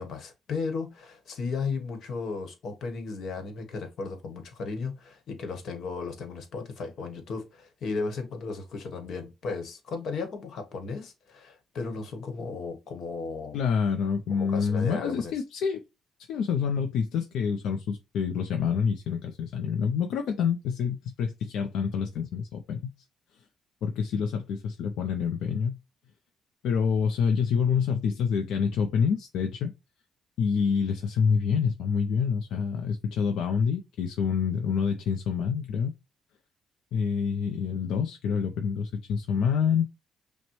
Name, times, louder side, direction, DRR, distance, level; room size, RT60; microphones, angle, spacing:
voice 1, 0.0-13.6 14.3-15.3, left 4 dB, 65° left, 1.1 m, -35 dB
voice 2, 13.5-15.8 16.3-22.9 23.8-25.8 26.6-29.7 30.4-35.9 36.9-39.9, left 6 dB, 80° left, 0.5 m, -27 dB
6.0 x 2.1 x 3.0 m
cardioid pair, 90°, 0 cm